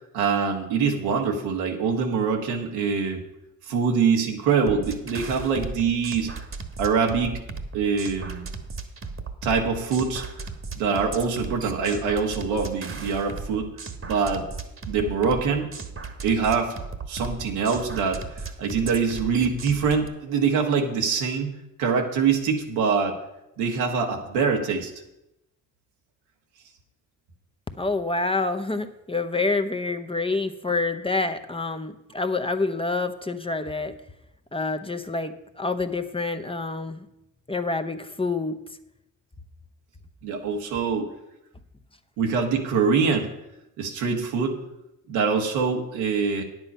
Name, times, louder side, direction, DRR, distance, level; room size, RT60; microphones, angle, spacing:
voice 1, 0.1-3.2 3.7-6.3 6.8-7.4 7.7-8.5 9.4-10.2 10.7-13.7 14.0-14.4 14.9-15.7 16.2-16.7 17.1-23.2 23.6-24.9 40.2-41.1 42.2-43.3 43.8-44.5 45.1-46.4, right 5 dB, 90° right, 2 dB, 1.5 m, -24 dB
sound 1, 4.7-20.1, right 4 dB, 35° right, 1.4 m, -36 dB
voice 2, 27.8-33.9 34.5-37.0 37.5-38.6, left 3 dB, 15° left, 7 dB, 0.9 m, -27 dB
9.8 x 7.9 x 5.5 m, 0.87 s
supercardioid pair, 60°, 38 cm